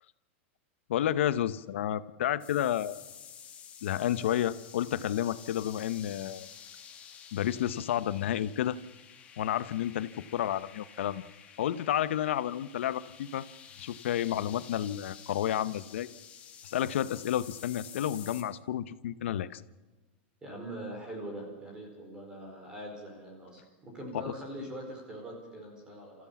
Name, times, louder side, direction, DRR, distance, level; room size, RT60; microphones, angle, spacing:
voice 1, 0.9-3.0 3.8-6.5 7.3-8.8 9.4-11.3 11.6-13.4 13.8-16.1 16.6-19.6 24.1-24.3, left 11 dB, 90° left, 15 dB, 1.0 m, -31 dB
sound 1, 2.4-18.4, left 8 dB, 20° left, 1.9 m, -51 dB
voice 2, 20.4-26.3, right 1 dB, 10° right, 1 dB, 4.8 m, -42 dB
29.0 x 15.0 x 7.2 m, 1.2 s
supercardioid pair, 175°, 6 cm